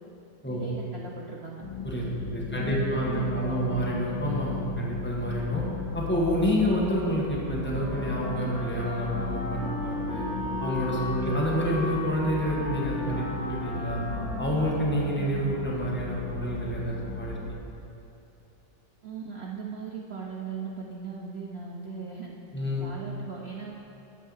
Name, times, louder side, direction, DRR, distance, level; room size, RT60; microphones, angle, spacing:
voice 1, 0.5-1.6 2.4-3.8 11.1-11.4 19.0-22.3 22.8-23.7, right 5 dB, 90° right, -2 dB, 0.5 m, -39 dB
sound 1, 1.6-17.5, left 3 dB, 80° left, 1.5 m, -36 dB
voice 2, 2.3-5.6 5.9-10.3 10.6-14.0 14.4-17.6 22.5-22.9, equal, 5° left, -5 dB, 1.3 m, -28 dB
Wind instrument woodwind instrument, 7.5-15.8, left 1 dB, 40° left, 1.8 m, -36 dB
9.9 x 4.6 x 7.2 m, 2.8 s
omnidirectional pair, 2.0 m